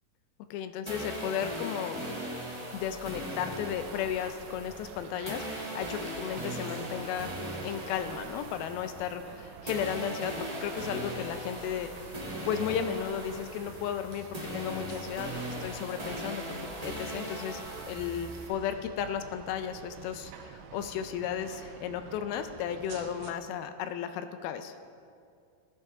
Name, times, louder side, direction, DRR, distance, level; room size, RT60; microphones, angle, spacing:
voice 1, 0.5-2.0 2.7-7.3 7.6-12.1 12.5-17.6 17.9-24.7, left 9 dB, 90° left, 9 dB, 2.5 m, -34 dB
sound 1, 0.9-9.4 9.7-18.5, right 1 dB, 20° right, 1.1 m, -39 dB
sound 2, 3.5-23.3, right 8 dB, 90° right, 2.5 m, -48 dB
18.5 x 10.5 x 3.6 m, 2.3 s
omnidirectional pair, 4.2 m